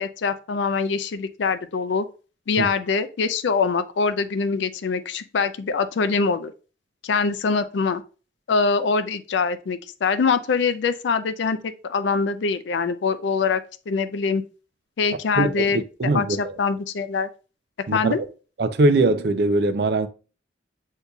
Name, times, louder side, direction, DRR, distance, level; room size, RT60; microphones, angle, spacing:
voice 1, 0.0-2.1 2.5-6.5 7.0-8.0 8.5-14.4 15.0-15.8 16.1-17.3 17.9-18.2, left 5 dB, 80° left, 0.4 m, -24 dB
voice 2, 15.4-16.6 17.9-18.1 18.6-20.1, right 2 dB, 60° right, 0.4 m, -21 dB
8.0 x 2.7 x 2.3 m
head